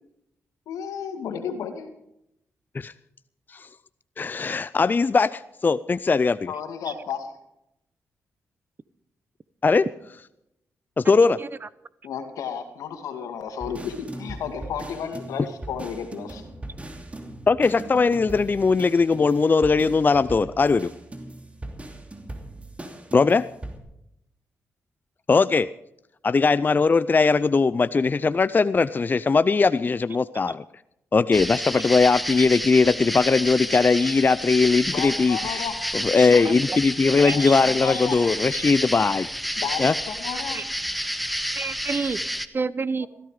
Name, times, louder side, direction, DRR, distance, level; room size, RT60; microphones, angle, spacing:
voice 1, 0.7-1.9 6.5-7.3 12.0-16.4 34.9-35.8 37.2-38.2 39.6-40.6, left 7 dB, 90° left, 6 dB, 2.2 m, -32 dB
voice 2, 4.2-6.5 9.6-9.9 11.0-11.4 17.5-20.9 23.1-23.5 25.3-25.7 26.2-30.6 31.1-35.7 35.9-39.3 39.8-39.9, left 4 dB, 35° left, 16 dB, 0.5 m, -20 dB
voice 3, 11.2-11.7 30.5-30.6 31.7-31.8 36.4-36.8 37.3-37.6 37.8-37.9 40.3-40.7 41.5-42.2 42.5-43.1, right 4 dB, 40° right, 18 dB, 0.8 m, -30 dB
sound 1, 13.6-23.8, right 1 dB, 25° right, 2.8 m, -39 dB
sound 2, 31.3-42.5, equal, ahead, 1.2 m, -30 dB
16.0 x 14.0 x 5.0 m, 0.81 s
cardioid pair, 60°, 6 cm